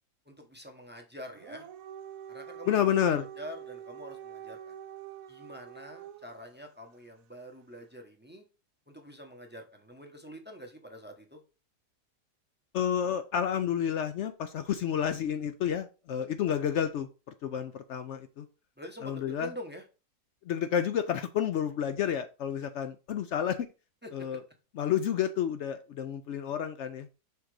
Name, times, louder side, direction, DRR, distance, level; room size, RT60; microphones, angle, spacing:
voice 1, 0.3-1.7 2.3-4.7 5.3-8.4 8.9-11.4 18.8-19.8 24.0-24.4, equal, 10° right, 3 dB, 0.6 m, -45 dB
Dog, 1.3-6.4, right 9 dB, 70° right, 1.0 m, -46 dB
voice 2, 2.7-3.2 12.7-17.1 17.4-18.5 19.0-19.5 20.5-23.7 24.1-24.4 24.8-27.1, left 9 dB, 75° left, 9 dB, 0.6 m, -30 dB
5.7 x 3.8 x 4.7 m, 0.33 s
omnidirectional pair, 1.7 m